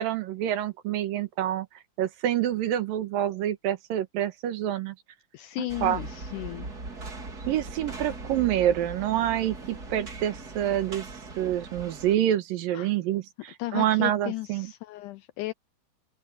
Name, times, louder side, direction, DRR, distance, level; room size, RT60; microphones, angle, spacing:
voice 1, 0.0-1.7 2.0-4.9 5.6-6.0 7.5-11.1 11.4-14.7, right 11 dB, 80° right, 3.0 m, -27 dB
voice 2, 5.3-6.7 12.7-12.9 13.6-15.5, left 18 dB, 85° left, 1.8 m, -34 dB
sound 1, 5.7-12.2, right 3 dB, 30° right, 3.2 m, -40 dB
open air
omnidirectional pair, 4.0 m